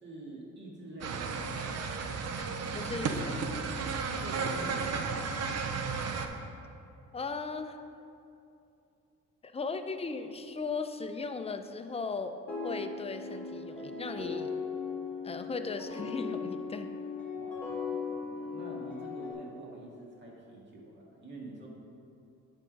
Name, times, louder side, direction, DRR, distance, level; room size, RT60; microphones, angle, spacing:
voice 1, 0.0-1.5 4.2-5.3 17.3-21.7, right 2 dB, 35° right, -3 dB, 1.8 m, -47 dB
sound 1, 1.0-6.3, right 4 dB, 55° right, 0.7 m, -33 dB
voice 2, 2.7-3.4 7.1-7.8 9.4-14.6 15.2-16.9, left 4 dB, 20° left, 8 dB, 0.4 m, -37 dB
sound 2, 12.5-19.3, left 5 dB, 5° left, 1.9 m, -38 dB
9.7 x 3.7 x 5.1 m, 2.7 s
cardioid pair, 90°, 30 cm